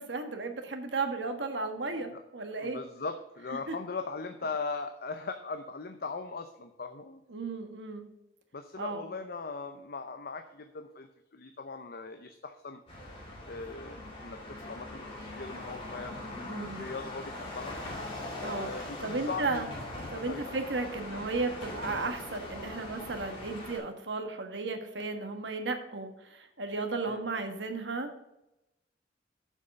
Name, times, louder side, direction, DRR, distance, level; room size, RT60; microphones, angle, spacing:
voice 1, 0.0-2.8 3.7-3.8 7.3-8.1 8.8-9.0 16.4-16.9 18.4-18.7 19.0-19.7 20.1-28.1, right 3 dB, 80° right, 6 dB, 1.4 m, -34 dB
voice 2, 2.5-7.2 8.5-12.8 13.5-16.2 16.6-17.8 18.4-19.6 20.1-20.6 21.1-21.3 27.1-27.3, left 4 dB, 60° left, 7 dB, 0.7 m, -39 dB
sound 1, 12.9-23.8, left 1 dB, 30° left, 3.7 m, -41 dB
7.2 x 6.5 x 6.6 m, 0.90 s
head